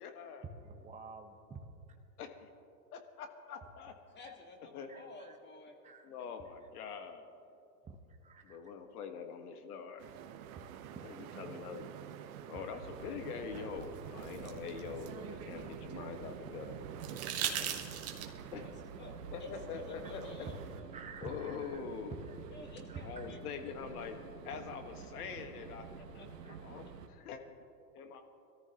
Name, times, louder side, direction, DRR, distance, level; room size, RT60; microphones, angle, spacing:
voice 1, 0.0-0.4 2.2-2.5 2.9-3.9 4.7-4.9 6.0-7.3 8.4-10.0 11.0-11.9 12.5-16.8 18.5-18.7 19.3-20.2 21.2-22.1 23.0-25.9 26.5-27.4 27.9-28.2, left 6 dB, 70° left, 6 dB, 1.8 m, -44 dB
voice 2, 0.6-1.6 4.9-5.4 5.8-6.1 7.8-8.6 10.6-11.0 13.5-13.6 16.7-17.3 20.9-21.8 22.2-22.4 22.9-23.3 26.4-26.6, right 4 dB, 15° right, 4 dB, 1.1 m, -50 dB
voice 3, 4.1-5.8 17.4-17.7 18.6-18.7 19.0-19.1 19.4-20.6 22.5-23.9 25.9-26.3, left 3 dB, 20° left, 2 dB, 2.0 m, -52 dB
sound 1, 10.0-20.8, right 10 dB, 60° right, 1.1 m, -49 dB
sound 2, 12.7-27.1, right 6 dB, 80° right, 1.5 m, -49 dB
sound 3, 13.8-16.1 17.0-18.5 20.2-20.3, right 9 dB, 30° right, 1.4 m, -40 dB
22.5 x 14.0 x 3.1 m, 2.6 s
hypercardioid pair, 115°, 47 cm